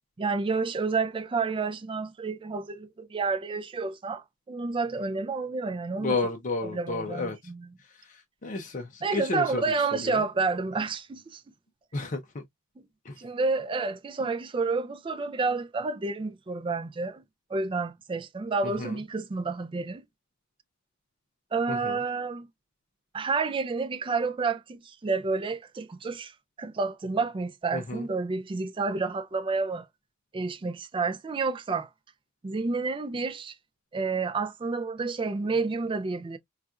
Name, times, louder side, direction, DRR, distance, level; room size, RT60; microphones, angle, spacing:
voice 1, 0.2-6.2 6.6-7.7 9.0-11.4 13.2-17.2 17.5-20.0 21.5-22.5 23.1-26.3 26.6-29.9 30.3-31.9 32.4-33.5 33.9-36.4, right 4 dB, 25° right, 0.3 m, -30 dB
voice 2, 6.0-7.4 8.1-9.6 10.0-10.2 11.9-12.4 13.1-13.2 18.8-19.0 21.7-22.0 27.7-28.0, left 3 dB, 40° left, 0.6 m, -32 dB
4.1 x 2.4 x 2.3 m
head